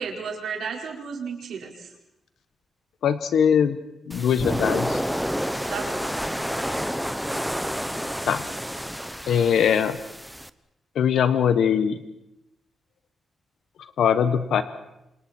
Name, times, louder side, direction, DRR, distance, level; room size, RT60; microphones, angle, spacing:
voice 1, 0.0-1.9 5.7-6.0, right 6 dB, 80° right, 0 dB, 4.9 m, -33 dB
voice 2, 3.0-3.8 4.1-5.0 8.3-8.4 9.3-10.0 10.9-12.0 14.0-14.6, left 8 dB, 85° left, 11 dB, 1.3 m, -21 dB
sound 1, 4.1-10.5, equal, ahead, 0.8 m, -29 dB
29.5 x 27.0 x 4.5 m, 0.86 s
wide cardioid pair, 140°, 0 cm